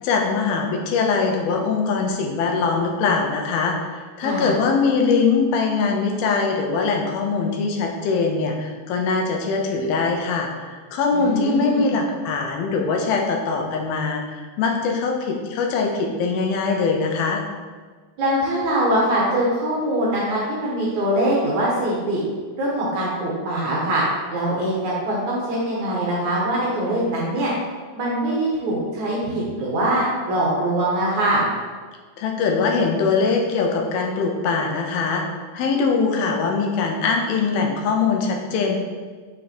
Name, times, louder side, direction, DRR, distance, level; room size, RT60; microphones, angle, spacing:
voice 1, 0.0-17.4 32.2-35.2 35.5-38.8, left 4 dB, 75° left, 2 dB, 2.6 m, -22 dB
voice 2, 4.2-4.5 11.1-11.9 18.2-22.2 22.6-24.0 24.3-27.5 28.0-31.5, right 1 dB, 65° right, -5 dB, 2.2 m, -23 dB
6.6 x 5.5 x 4.3 m, 1.5 s
omnidirectional pair, 4.5 m